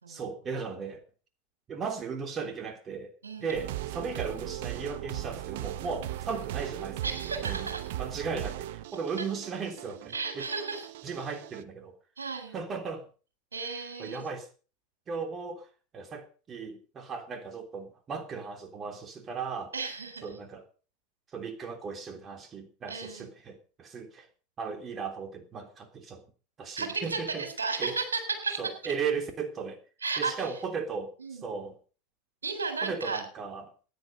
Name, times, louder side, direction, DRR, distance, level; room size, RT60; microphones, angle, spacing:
voice 1, 0.1-1.0 1.7-3.1 3.4-7.1 7.4-7.7 8.0-10.4 11.0-11.9 12.5-13.0 13.6-14.5 15.1-15.7 15.9-19.7 20.2-20.6 21.3-24.3 24.6-26.2 26.6-27.4 27.8-27.9 28.6-29.8 30.2-31.1 31.4-31.7 32.8-33.6, right 5 dB, 30° right, 6 dB, 3.3 m, -36 dB
voice 2, 3.2-3.6 7.0-7.9 9.2-9.3 10.1-10.9 12.2-12.6 13.5-14.2 19.7-20.3 22.9-23.3 26.8-28.7 30.0-30.6 31.2-31.5 32.4-33.2, right 4 dB, 85° right, 6 dB, 4.0 m, -34 dB
sound 1, 3.5-11.6, right 14 dB, 65° right, 0.8 m, -38 dB
14.5 x 10.5 x 5.4 m, 0.37 s
hypercardioid pair, 80°, 0 cm